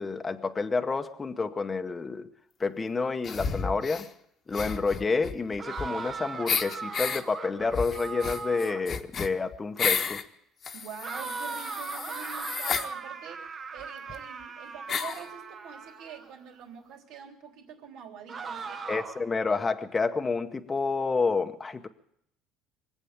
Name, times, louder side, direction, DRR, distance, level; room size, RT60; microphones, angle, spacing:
voice 1, 0.0-2.3 2.6-4.1 4.5-10.2 18.9-21.9, left 4 dB, 20° left, 6 dB, 0.8 m, -29 dB
sound 1, 3.2-4.1 4.5-6.1 6.5-7.2 7.7-10.2 10.6-12.9 13.8-13.9 14.1-14.2 14.9-15.3, left 6 dB, 35° left, 1.1 m, -32 dB
sound 2, 5.6-9.0 11.0-16.3 18.3-19.3, right 5 dB, 35° right, 0.9 m, -39 dB
voice 2, 10.7-19.0, right 7 dB, 75° right, 2 dB, 3.6 m, -45 dB
23.5 x 8.4 x 7.0 m, 0.72 s
cardioid pair, 135°, 0 cm